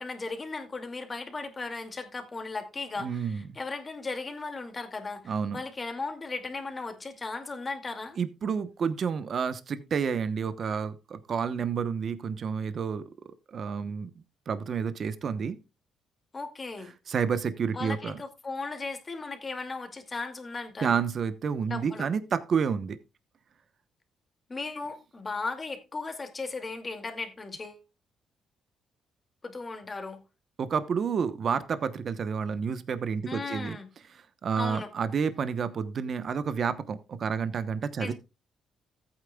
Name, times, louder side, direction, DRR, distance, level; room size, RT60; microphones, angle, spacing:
voice 1, 0.0-8.2 16.3-16.9 17.7-20.9 21.7-22.1 24.5-27.8 29.4-30.2 33.3-33.9 34.5-34.9 38.0-38.1, left 3 dB, 30° left, 2.3 m, -36 dB
voice 2, 3.0-3.4 5.3-5.6 8.2-13.0 13.5-14.1 14.5-15.6 17.1-18.2 20.8-23.0 30.6-33.8 34.4-38.1, right 6 dB, 55° right, 0.9 m, -29 dB
14.5 x 8.9 x 2.3 m
cardioid pair, 90°, 0 cm